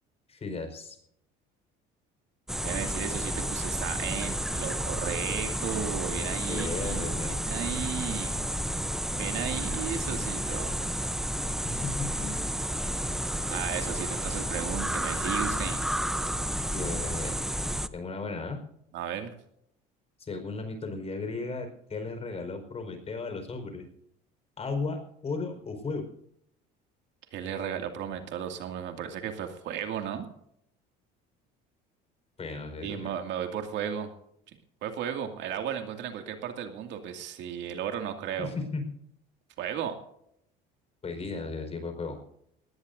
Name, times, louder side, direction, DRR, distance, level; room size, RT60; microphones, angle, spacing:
voice 1, 0.3-1.0 6.2-7.4 11.6-12.3 16.7-17.3 17.9-18.6 20.2-23.9 24.6-26.1 32.4-33.1 38.4-38.9 41.0-42.2, left 3 dB, 30° left, 6 dB, 4.9 m, -35 dB
sound 1, 2.5-17.9, equal, ahead, 0.7 m, -31 dB
voice 2, 2.6-8.4 9.1-10.8 13.5-15.8 18.9-19.3 27.3-30.3 32.8-34.1 34.8-38.5 39.6-40.0, right 9 dB, 65° right, 5 dB, 2.4 m, -35 dB
19.5 x 17.5 x 2.7 m, 0.72 s
cardioid pair, 105°, 20 cm